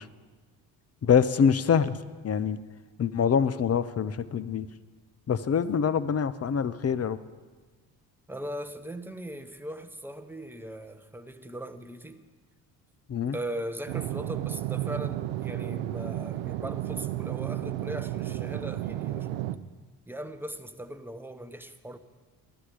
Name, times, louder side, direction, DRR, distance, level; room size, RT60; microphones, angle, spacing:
voice 1, 1.0-2.0 2.2-2.6 3.0-4.7 5.3-7.2 13.1-13.4, left 7 dB, 30° left, 0.7 m, -25 dB
voice 2, 8.3-12.2 13.3-19.5 20.1-22.0, right 1 dB, 5° right, 0.9 m, -39 dB
sound 1, 13.9-19.6, right 14 dB, 70° right, 0.7 m, -32 dB
13.5 x 11.5 x 4.9 m
hypercardioid pair, 55°, 48 cm